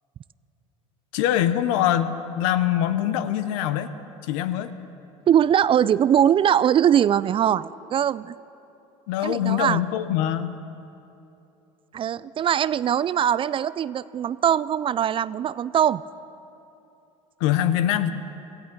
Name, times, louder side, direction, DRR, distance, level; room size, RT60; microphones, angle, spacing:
voice 1, 1.1-3.9 4.3-4.7 9.1-10.5 17.4-18.1, left 11 dB, 75° left, 12 dB, 0.9 m, -23 dB
voice 2, 5.3-8.4 9.2-9.8 11.9-16.0, right 9 dB, 35° right, 18 dB, 0.3 m, -21 dB
17.0 x 15.0 x 5.3 m, 2.8 s
supercardioid pair, 85°, 16 cm